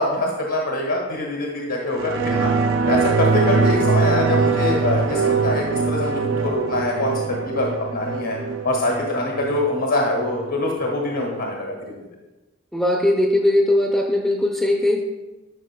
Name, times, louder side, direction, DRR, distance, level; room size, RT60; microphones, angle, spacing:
voice 1, 0.0-2.5 2.9-8.4 8.6-11.7, left 2 dB, 75° left, -1 dB, 1.3 m, -24 dB
sound 1, 1.9-10.9 11.3-11.4, right 4 dB, 60° right, 0.5 m, -22 dB
voice 2, 12.7-15.0, left 1 dB, 5° left, -1 dB, 0.5 m, -19 dB
11.5 x 5.6 x 2.2 m, 1.1 s
head